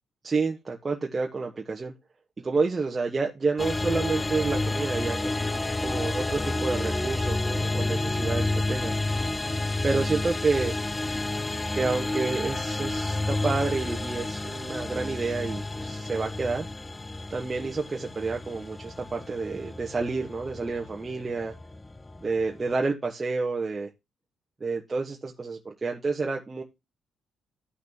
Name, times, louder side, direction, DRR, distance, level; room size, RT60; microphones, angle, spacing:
voice 1, 0.2-1.9 2.4-8.9 9.4-9.6 9.8-10.7 11.7-16.7 17.3-21.5 22.2-23.9 24.6-26.6, right 4 dB, 25° right, 1 dB, 1.2 m, -29 dB
sound 1, 3.6-22.7, left 2 dB, 20° left, 0.5 m, -30 dB
13.5 x 6.0 x 2.8 m, 0.23 s
cardioid pair, 90°, 0 cm